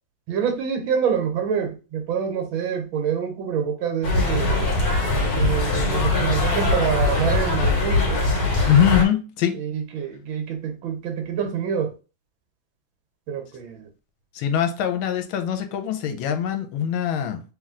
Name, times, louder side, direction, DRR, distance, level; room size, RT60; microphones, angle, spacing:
voice 1, 0.3-4.6 5.3-8.2 9.6-11.9 13.3-13.8, right 7 dB, 75° right, 1.6 m, -26 dB
sound 1, 4.0-9.0, left 2 dB, 50° left, 1.8 m, -21 dB
voice 2, 8.6-9.6 14.3-17.4, left 9 dB, 85° left, 1.5 m, -22 dB
3.3 x 3.2 x 3.6 m
omnidirectional pair, 2.2 m